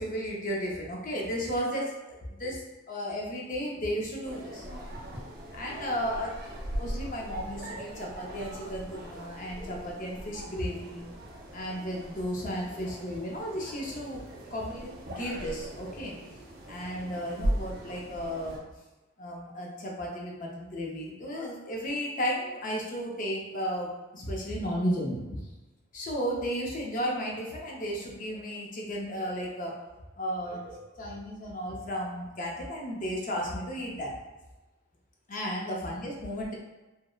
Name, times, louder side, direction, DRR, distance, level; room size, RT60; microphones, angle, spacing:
voice 1, 0.0-2.6 2.9-4.7 5.5-11.1 11.5-14.2 14.5-16.2 16.7-18.6 19.2-25.4 25.9-29.9 30.2-34.1 35.3-36.5, equal, 40° left, -1 dB, 0.5 m, -34 dB
sound 1, 4.2-18.6, right 1 dB, 50° right, 0.4 m, -39 dB
3.0 x 2.0 x 2.2 m, 1.1 s
head